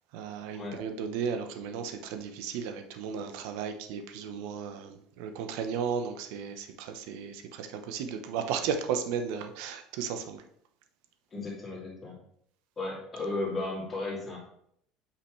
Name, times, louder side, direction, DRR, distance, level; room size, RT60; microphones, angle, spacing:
voice 1, 0.1-10.4, right 7 dB, 70° right, 6 dB, 0.9 m, -35 dB
voice 2, 11.3-12.2 12.8-14.4, left 2 dB, 15° left, -5 dB, 2.7 m, -35 dB
8.5 x 5.8 x 3.2 m, 0.70 s
cardioid pair, 165°, 0 cm